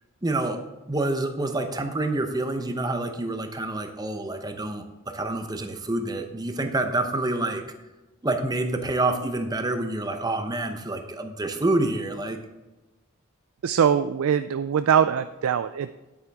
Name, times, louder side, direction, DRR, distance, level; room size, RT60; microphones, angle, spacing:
voice 1, 0.2-0.6 0.9-7.6 8.2-12.4, right 2 dB, 20° right, 6 dB, 0.8 m, -27 dB
voice 2, 13.6-15.9, right 8 dB, 80° right, 11 dB, 0.4 m, -22 dB
9.6 x 8.7 x 3.5 m, 1.1 s
head